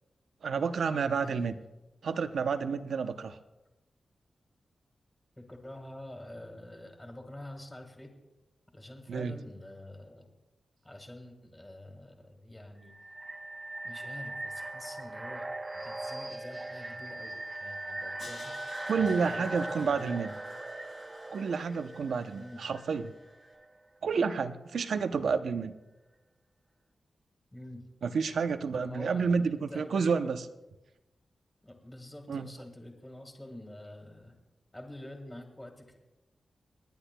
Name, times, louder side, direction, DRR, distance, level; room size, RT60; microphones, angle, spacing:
voice 1, 0.4-1.5 2.0-3.4 9.1-9.3 18.9-20.3 21.3-23.1 24.0-25.7 28.0-30.4 32.3-32.5, right 5 dB, 80° right, 10 dB, 0.6 m, -30 dB
voice 2, 1.2-1.6 5.4-8.1 8.7-10.3 10.8-12.9 13.8-18.5 18.9-20.4 22.3-22.6 27.5-27.9 28.7-30.4 31.6-34.3 34.7-36.0, left 1 dB, 10° left, 4 dB, 1.6 m, -47 dB
sound 1, 12.9-23.6, right 2 dB, 20° right, 0.5 m, -40 dB
Crash cymbal, 18.2-23.2, left 4 dB, 75° left, 2.2 m, -53 dB
29.0 x 10.0 x 2.2 m, 1.0 s
wide cardioid pair, 155°, 0 cm